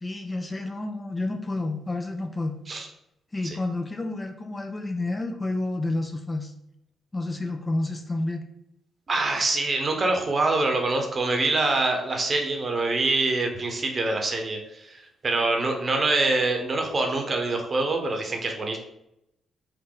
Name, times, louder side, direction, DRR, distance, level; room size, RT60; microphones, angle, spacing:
voice 1, 0.0-2.5 3.3-6.5 7.1-8.4, left 2 dB, 25° left, 4 dB, 0.5 m, -30 dB
voice 2, 9.1-18.8, right 2 dB, 40° right, 3 dB, 0.9 m, -25 dB
3.8 x 2.5 x 3.8 m, 0.82 s
hypercardioid pair, 45°, 0 cm